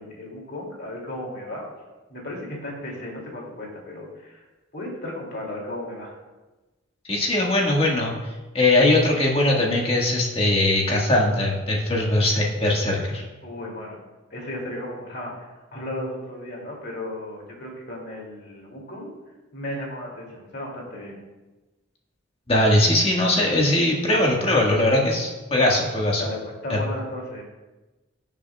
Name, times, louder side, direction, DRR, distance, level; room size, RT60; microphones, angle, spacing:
voice 1, 0.0-1.6 2.1-4.4 4.7-6.2 13.4-14.0 14.3-15.3 15.7-19.1 19.5-21.1 26.2-27.4, left 1 dB, 55° left, -2 dB, 2.7 m, -35 dB
voice 2, 7.1-8.1 8.5-13.2 22.5-26.2 26.7-26.8, left 1 dB, 30° left, -2 dB, 1.7 m, -20 dB
16.5 x 7.3 x 2.4 m, 1.1 s
head